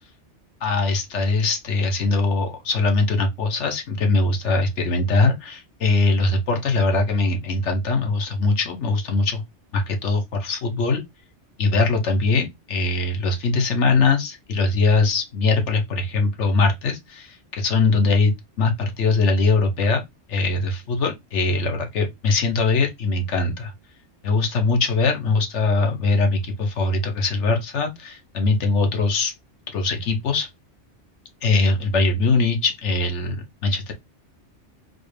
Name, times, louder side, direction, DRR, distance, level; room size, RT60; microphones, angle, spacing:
voice 1, 0.6-9.4 9.7-11.0 11.6-20.0 20.3-23.7 24.2-29.3 29.7-30.5 31.4-33.9, left 3 dB, 70° left, 1.2 m, -21 dB
4.2 x 2.4 x 3.3 m
omnidirectional pair, 1.3 m